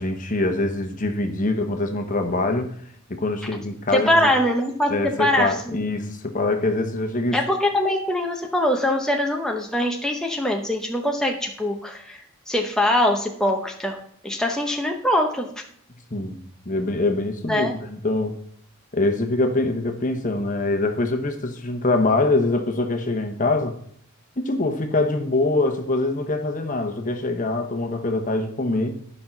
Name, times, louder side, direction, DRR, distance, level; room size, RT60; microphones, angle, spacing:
voice 1, 0.0-2.7 3.1-4.3 4.9-7.4 16.1-16.4 16.6-18.4 18.9-23.8 24.4-29.0, left 2 dB, 35° left, 6 dB, 1.1 m, -24 dB
voice 2, 3.9-5.7 7.3-14.0 14.2-15.5 17.4-17.7, left 1 dB, 5° left, 1 dB, 0.8 m, -23 dB
11.5 x 5.5 x 5.9 m, 0.63 s
head